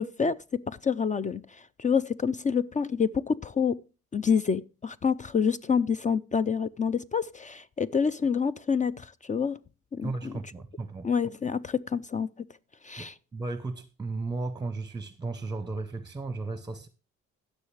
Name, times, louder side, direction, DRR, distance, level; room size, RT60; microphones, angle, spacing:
voice 1, 0.0-3.8 4.1-9.6 9.9-10.3 11.0-12.3 12.8-13.1, left 6 dB, 25° left, 0.4 m, -27 dB
voice 2, 10.0-11.1 13.0-16.9, right 3 dB, 15° right, 0.8 m, -35 dB
16.0 x 6.4 x 3.2 m
cardioid pair, 90°, 30 cm